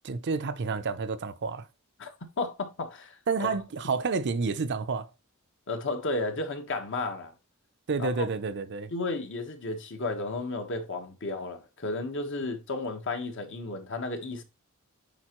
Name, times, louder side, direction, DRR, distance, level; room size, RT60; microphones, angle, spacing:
voice 1, 0.0-1.7 3.3-5.1 7.9-8.9, right 4 dB, 55° right, 0.6 m, -29 dB
voice 2, 2.0-3.5 5.7-7.3 8.0-8.3 8.9-14.4, left 2 dB, 60° left, 1.2 m, -33 dB
8.7 x 4.4 x 3.0 m
head